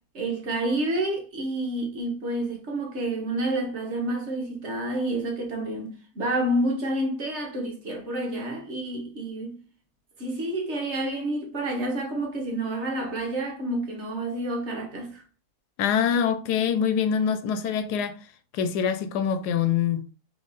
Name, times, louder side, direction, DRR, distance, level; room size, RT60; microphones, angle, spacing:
voice 1, 0.1-9.6 10.2-15.2, right 1 dB, 50° right, 1.3 m, -29 dB
voice 2, 15.8-18.1 18.5-20.0, left 7 dB, 90° left, 1.2 m, -24 dB
3.6 x 3.1 x 4.0 m
omnidirectional pair, 1.7 m